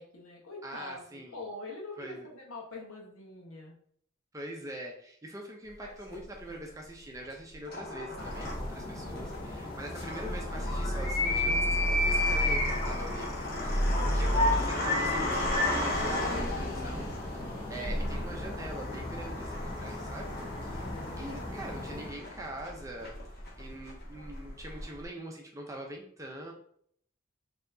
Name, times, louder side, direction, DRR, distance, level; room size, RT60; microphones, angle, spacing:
voice 1, 0.0-3.7 20.8-21.1, left 2 dB, 80° left, -1 dB, 1.1 m, -44 dB
voice 2, 0.6-1.4 2.0-2.3 4.3-17.1 17.7-20.4 20.6-20.9 21.2-23.1 23.6-26.5, right 1 dB, 15° right, 1 dB, 0.6 m, -43 dB
sound 1, 5.8-6.5 7.3-25.0, left 1 dB, 45° left, 1.1 m, -34 dB
sound 2, 8.2-22.1, left 2 dB, 25° left, 0.6 m, -34 dB
4.3 x 2.8 x 2.7 m, 0.64 s
head